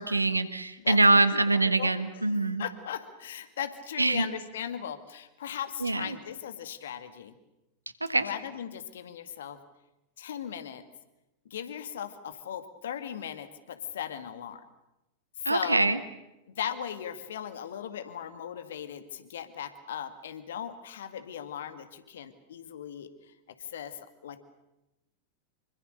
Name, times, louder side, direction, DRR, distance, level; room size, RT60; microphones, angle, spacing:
voice 1, 0.0-2.6 4.0-4.2 5.8-6.1 8.0-8.3 15.4-16.0, right 2 dB, 80° right, 13 dB, 1.5 m, -24 dB
voice 2, 0.8-1.2 1.5-7.3 8.2-9.6 10.2-10.8 11.5-14.6 15.4-15.9 16.6-23.1 23.7-24.0 24.2-24.4, left 9 dB, 60° left, 11 dB, 2.1 m, -38 dB
26.0 x 24.0 x 6.8 m, 0.96 s
figure-of-eight pair, 90°, 0 cm